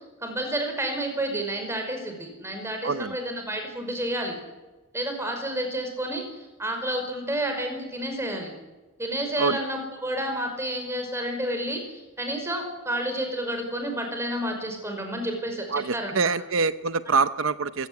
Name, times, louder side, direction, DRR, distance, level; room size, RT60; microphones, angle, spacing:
voice 1, 0.2-4.4 4.9-8.5 9.0-16.3, right 1 dB, 15° right, 4 dB, 5.4 m, -30 dB
voice 2, 2.8-3.1 9.4-9.7 15.7-17.9, right 4 dB, 75° right, 13 dB, 0.8 m, -25 dB
27.5 x 17.0 x 9.6 m, 1.2 s
head